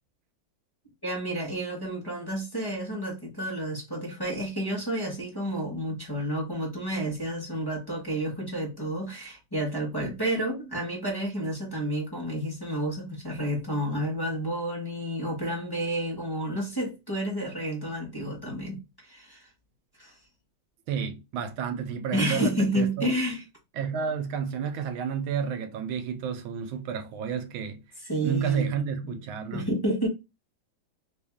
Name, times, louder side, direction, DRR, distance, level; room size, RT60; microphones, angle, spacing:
voice 1, 1.0-19.5 20.0-20.1 22.1-23.4 28.1-29.1 29.5-30.1, right 1 dB, 15° left, 1.0 m, -30 dB
voice 2, 20.9-23.1 23.7-27.8 28.2-29.7, right 7 dB, 85° right, 1.5 m, -31 dB
3.4 x 2.7 x 3.5 m
omnidirectional pair, 2.2 m